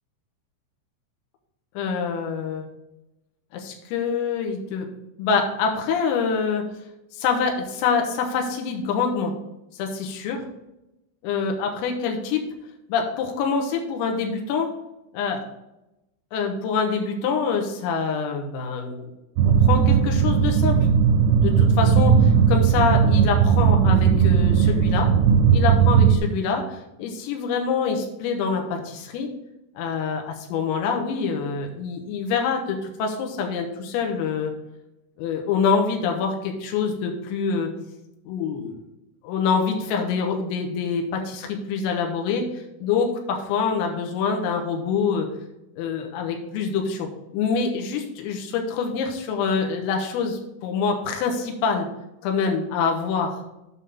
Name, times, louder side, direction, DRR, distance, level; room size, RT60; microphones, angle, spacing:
voice 1, 1.8-2.7 3.5-4.9 5.2-6.7 7.1-9.4 9.7-10.5 11.2-12.4 12.9-14.7 15.1-15.5 16.3-19.1 19.6-20.9 21.4-25.1 25.5-29.3 29.8-34.5 35.2-37.7 38.3-38.8 39.2-45.3 45.8-51.9 52.2-53.4, left 5 dB, 90° left, 2 dB, 3.8 m, -25 dB
sound 1, 19.4-26.2, right 7 dB, 85° right, 3.1 m, -17 dB
9.0 x 5.7 x 3.6 m, 0.91 s
omnidirectional pair, 5.8 m